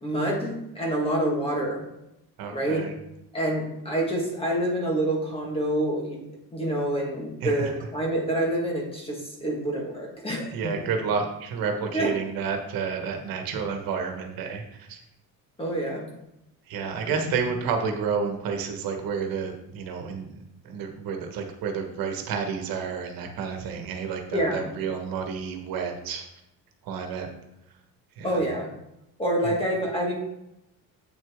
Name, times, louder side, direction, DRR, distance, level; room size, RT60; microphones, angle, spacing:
voice 1, 0.0-1.8 2.5-2.8 3.3-6.2 6.5-10.7 11.9-12.1 15.6-16.1 17.0-17.4 24.3-24.7 28.2-28.7 29.2-30.2, right 1 dB, 15° left, -1 dB, 1.6 m, -27 dB
voice 2, 2.4-2.9 7.4-7.7 10.5-14.6 14.9-15.0 16.7-20.3 20.6-26.2 26.9-27.3 28.2-28.4 29.4-29.5, right 6 dB, 75° right, 4 dB, 1.4 m, -30 dB
8.3 x 6.4 x 3.6 m, 0.86 s
cardioid pair, 175°, 35 cm